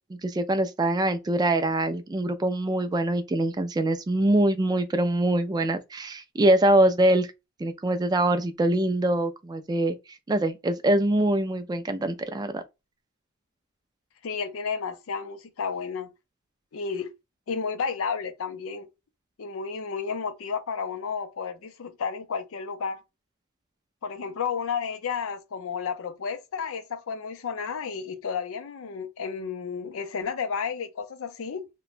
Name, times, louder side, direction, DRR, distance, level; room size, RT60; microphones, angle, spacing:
voice 1, 0.1-7.3 7.6-10.0 10.3-12.6, right 1 dB, 20° right, 0.3 m, -24 dB
voice 2, 14.2-16.1 16.7-17.1 17.5-18.9 19.4-23.0 24.0-31.7, left 6 dB, 65° left, 0.5 m, -32 dB
2.9 x 2.1 x 2.4 m
head